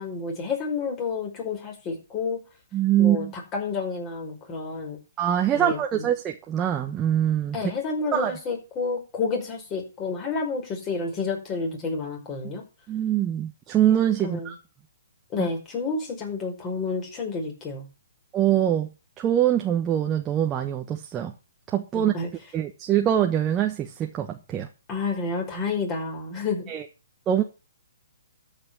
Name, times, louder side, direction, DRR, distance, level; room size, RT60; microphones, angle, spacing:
voice 1, 0.0-2.4 3.0-5.0 5.5-6.1 7.5-12.6 14.2-14.5 15.3-17.9 21.9-22.3 24.9-26.7, left 4 dB, 25° left, 5.2 m, -30 dB
voice 2, 2.7-3.3 5.2-7.6 8.1-8.3 12.9-14.6 15.4-15.5 18.3-18.9 19.2-21.3 21.7-22.1 22.5-24.7 26.7-26.8 27.3-27.4, right 11 dB, 20° right, 1.2 m, -23 dB
13.5 x 5.7 x 7.3 m
hypercardioid pair, 140°, 0 cm